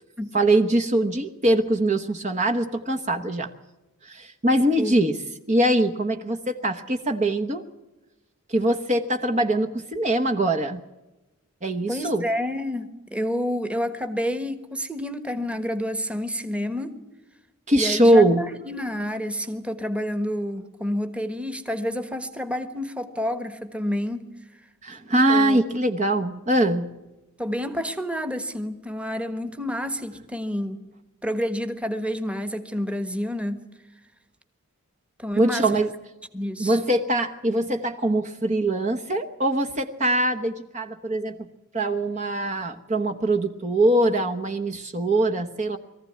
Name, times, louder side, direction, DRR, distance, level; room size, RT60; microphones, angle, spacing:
voice 1, 0.3-3.5 4.0-5.1 5.5-7.6 8.5-10.8 11.6-12.2 17.7-18.4 24.8-26.9 35.3-35.9 36.6-41.5 41.7-45.8, right 1 dB, 35° right, 6 dB, 1.1 m, -22 dB
voice 2, 11.9-17.0 17.7-24.3 25.3-25.6 27.4-30.8 31.2-33.6 35.2-35.8 36.3-36.8, equal, 5° right, 9 dB, 1.4 m, -29 dB
22.5 x 15.0 x 9.6 m, 1.0 s
head